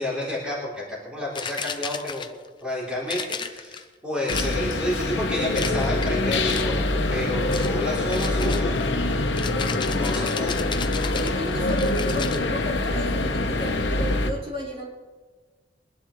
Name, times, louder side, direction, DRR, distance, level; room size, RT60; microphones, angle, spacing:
voice 1, 0.0-2.2 2.6-9.1 9.8-10.6, left 1 dB, 5° right, -6 dB, 3.4 m, -30 dB
sound 1, 1.4-2.5 3.1-3.8 4.3-4.9 5.5-6.1 6.5-6.9 7.5-7.8 8.1-12.4, left 6 dB, 25° left, 0.6 m, -34 dB
sound 2, 4.3-14.3, left 2 dB, 75° left, 1.1 m, -25 dB
voice 2, 11.1-14.9, equal, 30° right, -6 dB, 3.8 m, -33 dB
22.0 x 11.5 x 3.2 m, 1.4 s
head